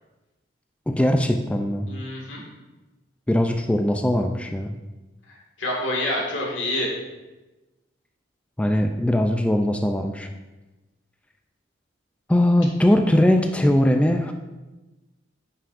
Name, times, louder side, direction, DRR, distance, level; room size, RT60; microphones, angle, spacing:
voice 1, 0.9-1.9 3.3-4.7 8.6-10.3 12.3-14.3, left 1 dB, 5° left, 4 dB, 0.3 m, -20 dB
voice 2, 1.9-2.4 5.3-6.9, left 1 dB, 80° left, -2 dB, 1.9 m, -27 dB
9.5 x 5.9 x 2.5 m, 1.1 s
head